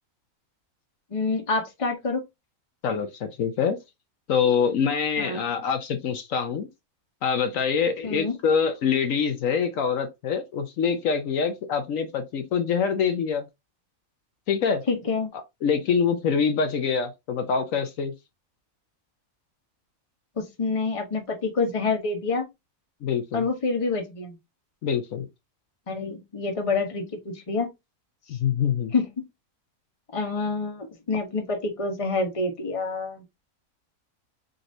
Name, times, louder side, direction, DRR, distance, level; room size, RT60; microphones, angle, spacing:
voice 1, 1.1-2.2 5.2-5.5 8.0-8.3 14.9-15.3 20.4-22.5 23.3-24.4 25.9-27.7 28.9-29.1 30.1-33.2, left 3 dB, 25° left, 1.1 m, -27 dB
voice 2, 2.8-3.8 4.3-6.7 7.2-13.4 14.5-14.8 15.6-18.1 23.0-23.5 24.8-25.3 28.3-28.9, left 6 dB, 70° left, 1.1 m, -25 dB
4.5 x 3.9 x 2.6 m
omnidirectional pair, 1.5 m